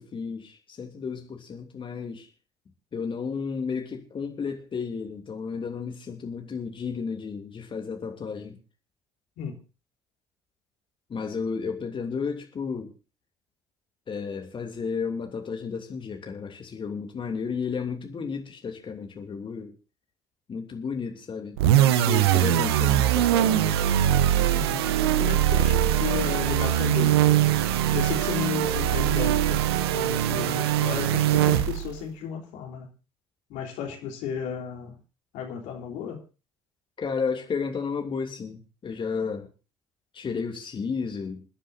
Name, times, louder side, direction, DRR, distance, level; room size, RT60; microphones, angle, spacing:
voice 1, 0.0-2.3 2.9-8.6 11.1-12.9 14.1-19.7 20.5-23.8 37.0-39.5 40.1-41.4, left 5 dB, 40° left, 4 dB, 3.0 m, -32 dB
sound 1, 21.6-32.0, right 12 dB, 80° right, 0.9 m, -22 dB
voice 2, 24.5-27.2 27.9-32.9 33.5-35.0 35.3-36.2, left 7 dB, 65° left, 2 dB, 3.8 m, -34 dB
28.5 x 10.0 x 2.7 m, 0.32 s
hypercardioid pair, 55°, 13 cm